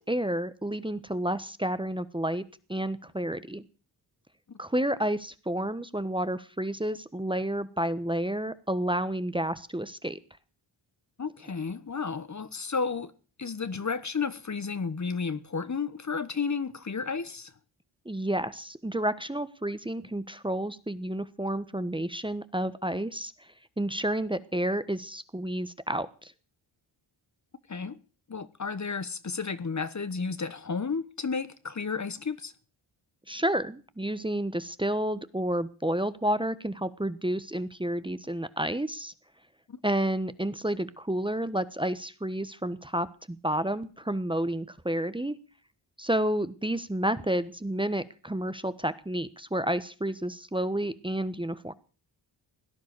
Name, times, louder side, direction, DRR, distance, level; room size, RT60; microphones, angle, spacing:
voice 1, 0.1-2.4 2.7-3.6 4.6-10.2 18.0-23.3 23.8-26.3 33.3-39.1 39.8-45.4 46.0-51.7, right 1 dB, 10° right, 1.2 m, -30 dB
voice 2, 11.2-13.1 13.4-17.5 27.7-28.0 28.3-32.5 39.7-39.8, left 5 dB, 35° left, 1.3 m, -32 dB
17.5 x 10.5 x 6.7 m
cardioid pair, 60°, 49 cm